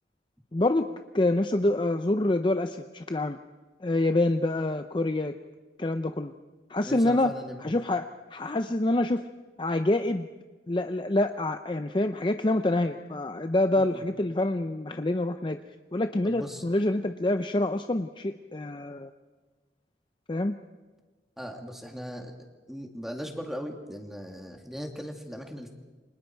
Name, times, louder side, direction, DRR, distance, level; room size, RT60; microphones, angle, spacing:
voice 1, 0.5-0.9 1.1-3.4 3.8-5.4 5.8-6.3 6.7-7.3 7.6-9.3 9.6-10.3 10.7-15.6 15.9-19.1 20.3-20.6, left 2 dB, 25° left, 8 dB, 0.6 m, -26 dB
voice 2, 6.8-7.6 13.8-14.0 16.2-16.6 21.4-22.3 22.7-25.7, equal, ahead, 2 dB, 2.4 m, -38 dB
29.0 x 25.5 x 4.6 m, 1.3 s
head